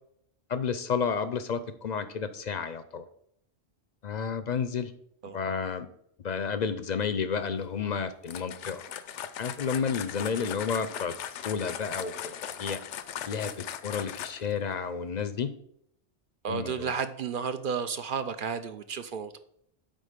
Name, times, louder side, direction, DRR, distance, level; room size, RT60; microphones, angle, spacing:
voice 1, 0.5-3.1 4.0-4.9 5.3-5.9 6.2-8.8 9.4-12.8 13.3-15.5 16.5-16.9, left 6 dB, 50° left, 12 dB, 0.5 m, -31 dB
sound 1, 8.2-14.6, left 9 dB, 90° left, 0.9 m, -39 dB
voice 2, 16.4-19.4, right 6 dB, 60° right, 10 dB, 0.6 m, -32 dB
9.3 x 3.9 x 5.1 m, 0.70 s
omnidirectional pair, 1.2 m